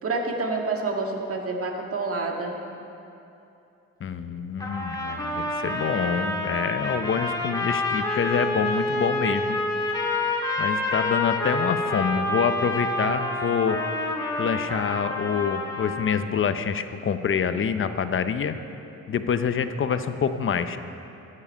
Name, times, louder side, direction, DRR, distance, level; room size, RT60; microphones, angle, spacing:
voice 1, 0.0-2.6, right 3 dB, 50° right, 1 dB, 1.9 m, -28 dB
voice 2, 4.0-9.6 10.6-13.8 14.4-18.5 19.1-20.8, left 7 dB, 45° left, 10 dB, 0.7 m, -26 dB
sound 1, 4.6-16.3, left 2 dB, 10° left, 2.0 m, -28 dB
14.0 x 9.9 x 5.5 m, 2.7 s
cardioid pair, 90°, 30 cm